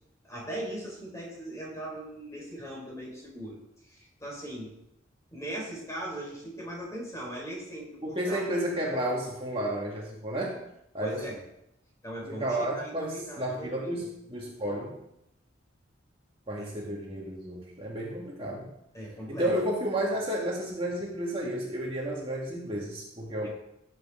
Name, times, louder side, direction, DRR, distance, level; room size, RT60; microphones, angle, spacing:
voice 1, 0.2-3.6 3.8-4.7 5.3-8.4 11.0-11.4 12.0-14.1 16.6-16.7 18.9-19.5 23.4-23.5, right 1 dB, 15° left, -3 dB, 4.5 m, -39 dB
voice 2, 8.0-10.6 10.9-11.2 12.2-15.0 16.5-18.7 19.3-23.5, right 1 dB, 30° right, -3 dB, 1.9 m, -32 dB
17.0 x 8.0 x 3.8 m, 0.80 s
head